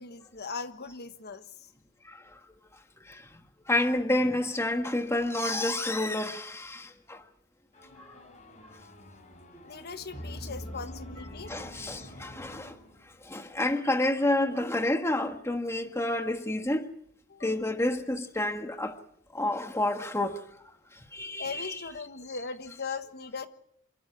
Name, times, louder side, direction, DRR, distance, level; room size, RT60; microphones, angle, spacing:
voice 1, 0.0-1.7 9.6-11.5 17.3-17.8 21.4-23.5, left 4 dB, 50° left, 1.4 m, -39 dB
voice 2, 3.7-7.2 11.5-12.8 13.2-16.9 17.4-19.0 19.3-20.4 21.1-21.8, left 1 dB, 10° left, 1.5 m, -29 dB
sound 1, 7.7-13.3, equal, 35° left, 5.2 m, -45 dB
27.5 x 12.5 x 9.7 m
head